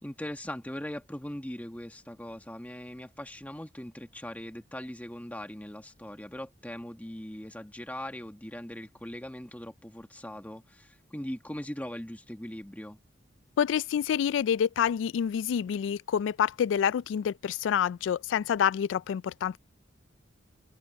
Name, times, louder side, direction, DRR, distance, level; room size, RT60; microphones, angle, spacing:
voice 1, 0.0-13.0, left 1 dB, 10° left, 1.3 m, -40 dB
voice 2, 13.6-19.6, left 8 dB, 85° left, 0.3 m, -27 dB
open air
head